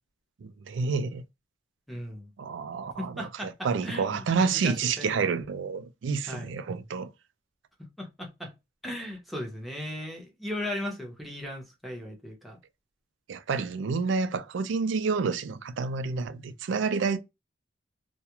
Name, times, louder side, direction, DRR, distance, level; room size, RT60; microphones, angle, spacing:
voice 1, 0.4-1.2 2.4-7.1 13.3-17.2, right 5 dB, 65° right, 0.4 m, -29 dB
voice 2, 1.9-2.3 3.0-5.3 6.3-6.5 8.0-8.5 8.8-12.6, left 1 dB, ahead, 0.8 m, -37 dB
2.3 x 2.1 x 2.8 m
head